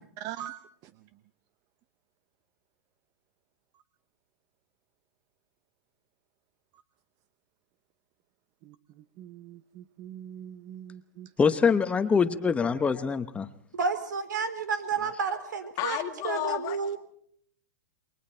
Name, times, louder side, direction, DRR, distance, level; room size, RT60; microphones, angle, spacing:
voice 1, 0.2-0.9 8.6-11.3 15.0-15.1, right 11 dB, 35° right, 14 dB, 0.9 m, -43 dB
voice 2, 11.4-13.5, left 5 dB, 10° left, 10 dB, 1.0 m, -24 dB
voice 3, 13.7-16.0 16.2-17.0, right 5 dB, 85° right, 10 dB, 3.6 m, -30 dB
voice 4, 15.8-17.0, left 15 dB, 35° left, 6 dB, 1.8 m, -32 dB
28.5 x 22.0 x 4.4 m, 0.65 s
hypercardioid pair, 130°, 10 cm